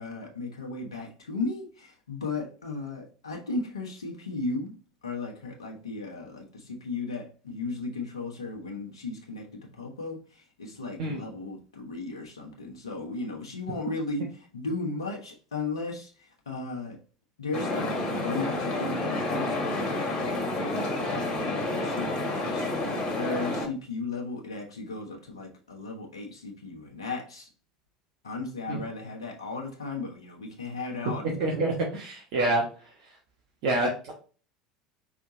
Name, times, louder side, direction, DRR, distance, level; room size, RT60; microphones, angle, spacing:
voice 1, 0.0-4.8 5.0-17.0 17.4-22.1 22.5-27.5 28.2-31.3, left 3 dB, 75° left, 1.2 m, -36 dB
sound 1, 17.5-23.7, left 2 dB, 30° left, 1.7 m, -29 dB
voice 2, 31.2-32.6 33.6-34.1, right 2 dB, 50° right, 1.2 m, -27 dB
5.1 x 3.5 x 2.7 m
figure-of-eight pair, 70°, 3 cm